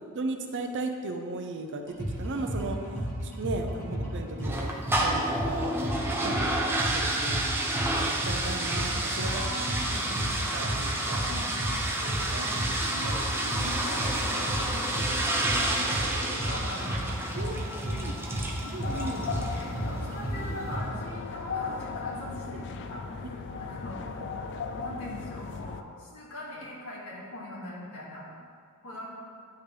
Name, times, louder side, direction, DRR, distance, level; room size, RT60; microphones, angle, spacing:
voice 1, 0.1-3.0 3.2-4.7 5.0-6.4 6.9-7.7 7.9-9.4 9.9-11.2 12.0-13.2 17.4-17.5 17.9-19.3 23.2-23.4, right 2 dB, 55° right, 5 dB, 0.6 m, -37 dB
sound 1, 1.9-20.8, equal, 15° left, 1.8 m, -33 dB
sound 2, 4.4-19.7, right 1 dB, 10° right, 0.7 m, -30 dB
voice 2, 9.1-10.0 11.2-11.5 13.0-14.9 15.5-17.6 17.9-18.7 19.5-24.1 24.7-28.3 28.8-29.1, left 1 dB, 70° left, -6 dB, 2.1 m, -41 dB
sound 3, 18.8-25.8, left 5 dB, 55° left, 0.4 m, -37 dB
10.0 x 5.8 x 3.3 m, 2.2 s
head